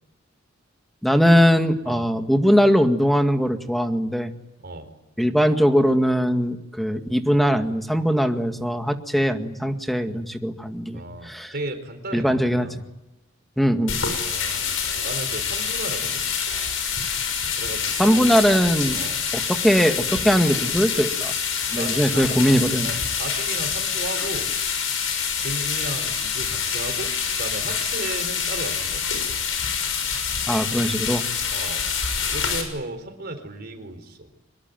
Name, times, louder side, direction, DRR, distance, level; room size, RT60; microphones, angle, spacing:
voice 1, 1.0-4.3 5.2-11.5 12.1-12.7 13.6-14.0 18.0-19.0 19.3-21.3 21.7-22.9 30.5-31.2, equal, ahead, 6 dB, 2.0 m, -20 dB
voice 2, 10.9-12.8 14.2-14.8 15.0-16.2 17.6-18.4 18.9-19.2 21.8-24.5 25.4-27.1 27.4-29.3 31.5-31.9 32.3-34.3, right 2 dB, 55° right, 7 dB, 4.1 m, -35 dB
sound 1, 13.9-32.6, left 6 dB, 80° left, 6.5 m, -26 dB
25.0 x 22.0 x 9.4 m, 0.92 s
head